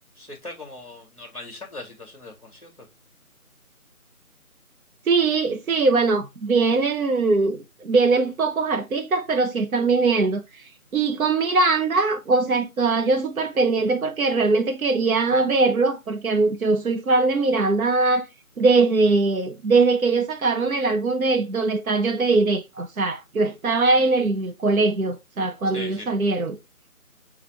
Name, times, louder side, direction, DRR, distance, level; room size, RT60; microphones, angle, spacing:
voice 1, 0.1-2.9 25.7-26.1, left 2 dB, 25° left, 1.3 m, -39 dB
voice 2, 5.1-10.6 10.9-18.3 18.6-26.6, right 3 dB, 70° right, 0.8 m, -21 dB
6.9 x 2.5 x 3.0 m
figure-of-eight pair, 180°, 44 cm